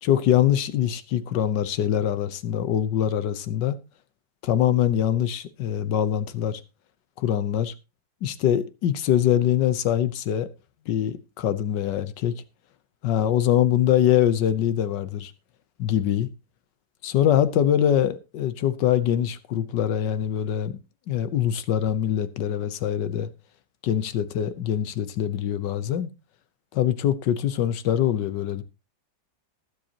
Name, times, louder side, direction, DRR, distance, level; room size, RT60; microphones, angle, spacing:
voice 1, 0.0-3.8 4.4-6.6 7.2-7.7 8.2-10.5 10.9-12.3 13.0-15.3 15.8-16.3 17.0-20.8 21.1-23.3 23.8-26.1 26.7-28.6, left 10 dB, 75° left, 1.5 m, -23 dB
20.0 x 7.7 x 2.9 m
omnidirectional pair, 2.0 m